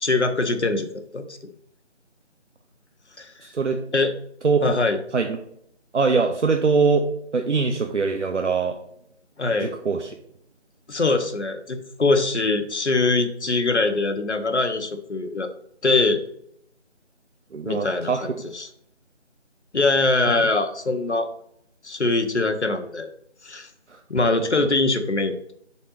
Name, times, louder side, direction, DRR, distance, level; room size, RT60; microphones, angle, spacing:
voice 1, 0.0-0.9 1.1-1.3 3.2-3.3 3.9-4.1 4.6-5.0 9.4-9.7 10.9-15.5 15.8-16.2 17.7-18.7 19.7-21.3 21.8-23.1 23.4-23.7 24.1-25.5, left 3 dB, 70° left, 6 dB, 0.9 m, -22 dB
voice 2, 3.4-3.8 4.4-4.8 5.1-5.4 5.9-7.1 7.3-8.8 9.6-10.1 17.5-18.3 20.3-20.4 23.9-24.0 24.6-24.7, right 4 dB, 75° right, 4 dB, 0.7 m, -22 dB
4.8 x 4.2 x 5.7 m, 0.70 s
figure-of-eight pair, 180°, 35 cm